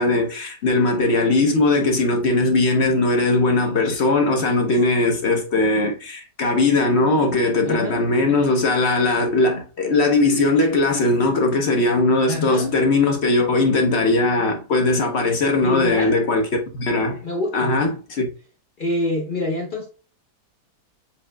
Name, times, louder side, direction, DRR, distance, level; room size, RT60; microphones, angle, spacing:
voice 1, 0.0-16.5 16.7-17.2 17.5-18.3, left 2 dB, 50° left, 0.9 m, -19 dB
voice 2, 7.6-8.0 12.2-12.7 15.6-16.2 17.2-17.7 18.8-19.9, left 2 dB, 70° left, 0.5 m, -26 dB
7.2 x 2.8 x 2.2 m
omnidirectional pair, 1.8 m